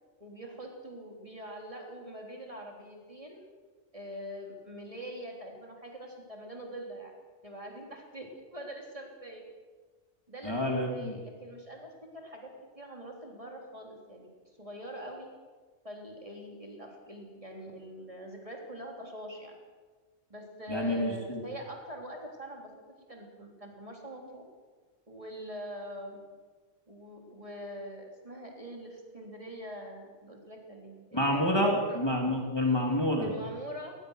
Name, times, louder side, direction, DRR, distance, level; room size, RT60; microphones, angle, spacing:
voice 1, 0.2-3.4 3.9-7.1 7.4-9.4 10.3-12.5 12.8-14.3 14.6-15.3 15.8-19.6 20.3-22.7 23.1-24.4 25.1-26.2 26.9-32.1 33.2-33.9, equal, 25° right, 0 dB, 3.5 m, -43 dB
voice 2, 10.4-11.1 20.7-21.5 31.1-33.3, left 1 dB, 20° left, 0 dB, 2.7 m, -28 dB
21.0 x 20.0 x 6.5 m, 1.4 s
omnidirectional pair, 1.3 m